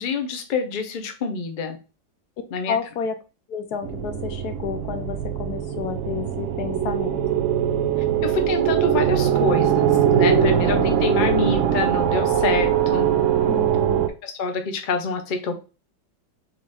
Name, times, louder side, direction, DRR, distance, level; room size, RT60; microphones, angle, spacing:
voice 1, 0.0-1.8 2.5-2.8 8.2-13.1 14.2-15.5, left 4 dB, 50° left, 5 dB, 0.6 m, -26 dB
voice 2, 2.7-3.2 3.5-7.2 10.6-10.8 13.5-14.1, left 7 dB, 70° left, 7 dB, 1.1 m, -30 dB
sound 1, 3.8-14.1, right 9 dB, 70° right, 0.7 m, -21 dB
4.0 x 3.6 x 3.4 m, 0.32 s
omnidirectional pair, 1.9 m